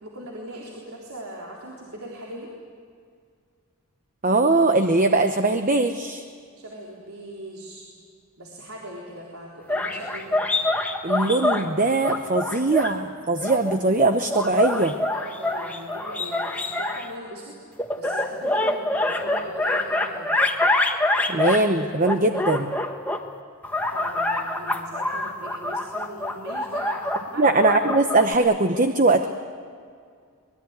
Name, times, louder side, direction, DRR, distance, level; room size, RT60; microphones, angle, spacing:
voice 1, 0.0-2.5 6.6-7.8 8.4-10.4 15.1-17.7 18.0-20.4 23.9-27.5, right 1 dB, 80° right, -3 dB, 3.8 m, -39 dB
voice 2, 4.2-6.2 11.0-14.9 21.3-22.7 27.4-29.3, right 2 dB, 35° right, 7 dB, 0.9 m, -21 dB
sound 1, 9.7-11.6 12.0-12.9 13.4-17.0 17.8-21.7 22.0-23.2 23.6-28.3, left 2 dB, 5° left, 1.4 m, -25 dB
24.5 x 20.5 x 9.5 m, 2.2 s
head